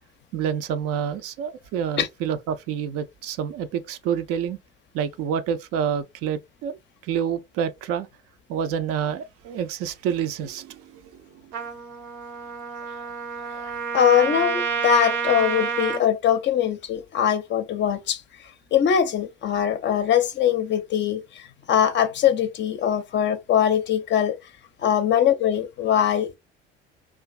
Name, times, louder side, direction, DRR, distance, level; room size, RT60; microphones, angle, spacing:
voice 1, 0.3-4.6 4.9-6.8 7.0-8.1 8.5-11.5, right 8 dB, 55° right, 0.4 m, -28 dB
Trumpet, 11.5-16.0, right 6 dB, 75° right, 0.7 m, -29 dB
voice 2, 13.9-18.2 18.7-24.4 24.8-26.4, left 9 dB, 40° left, 0.5 m, -22 dB
2.5 x 2.4 x 2.2 m
hypercardioid pair, 65°, 29 cm